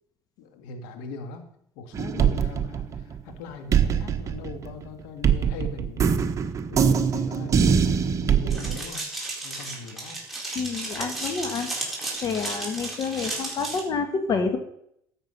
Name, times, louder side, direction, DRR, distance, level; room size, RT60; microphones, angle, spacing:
voice 1, 0.4-1.5 1.8-9.0 9.4-10.2, left 4 dB, 85° left, 7 dB, 1.8 m, -40 dB
sound 1, 1.9-3.3 3.7-8.8, right 7 dB, 35° right, 1.3 m, -23 dB
sound 2, 8.5-13.8, right 2 dB, ahead, 4.2 m, -34 dB
voice 2, 10.5-11.7 12.2-14.6, left 5 dB, 50° left, 7 dB, 1.9 m, -28 dB
13.0 x 8.1 x 5.5 m, 0.71 s
supercardioid pair, 105°, 9 cm